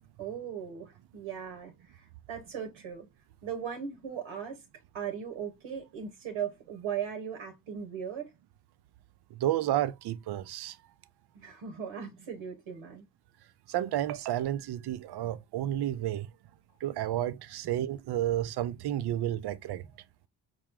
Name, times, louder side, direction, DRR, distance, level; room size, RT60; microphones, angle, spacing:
voice 1, 0.2-3.0 3.4-4.6 4.9-8.3 11.3-13.0, right 8 dB, 80° right, 1.1 m, -38 dB
voice 2, 9.3-10.8 13.7-16.3 16.8-19.9, right 12 dB, 55° right, 0.6 m, -31 dB
4.8 x 2.2 x 3.5 m
hypercardioid pair, 50°, 48 cm